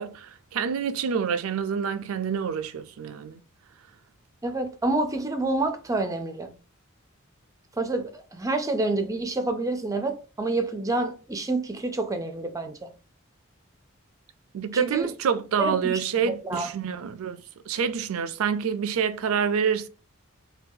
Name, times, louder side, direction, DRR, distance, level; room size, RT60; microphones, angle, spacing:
voice 1, 0.0-3.4 14.5-19.9, right 7 dB, 80° right, 0.4 m, -27 dB
voice 2, 4.4-6.5 7.8-12.9 14.8-15.1 15.6-16.9, right 2 dB, 15° right, 0.4 m, -28 dB
3.8 x 2.2 x 2.7 m
head